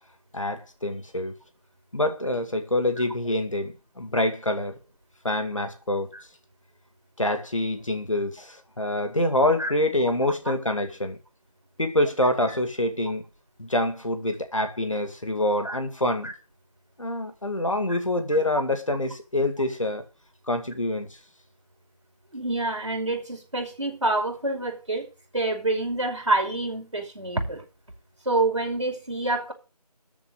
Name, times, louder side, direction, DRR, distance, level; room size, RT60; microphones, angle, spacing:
voice 1, 0.3-1.3 1.9-4.8 5.2-6.1 7.2-11.2 11.8-13.2 13.6-16.3 17.0-20.0 20.5-21.2, left 1 dB, 50° left, 2.2 m, -26 dB
voice 2, 22.3-25.1 25.3-27.6 28.3-29.5, right 2 dB, 50° right, 5.6 m, -27 dB
13.5 x 5.2 x 9.2 m
figure-of-eight pair, 175°, 21 cm